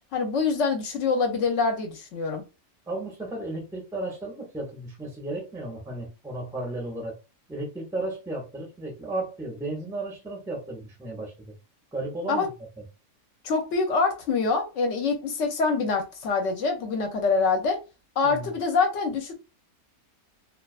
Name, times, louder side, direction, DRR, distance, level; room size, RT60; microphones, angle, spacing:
voice 1, 0.1-2.4 12.3-12.5 13.4-17.8 18.2-19.4, left 4 dB, 65° left, 0.8 m, -25 dB
voice 2, 2.9-7.1 7.5-11.5 11.9-12.5 12.8-12.9 18.2-18.5, right 2 dB, 5° right, 0.4 m, -34 dB
2.4 x 2.4 x 2.3 m
omnidirectional pair, 1.5 m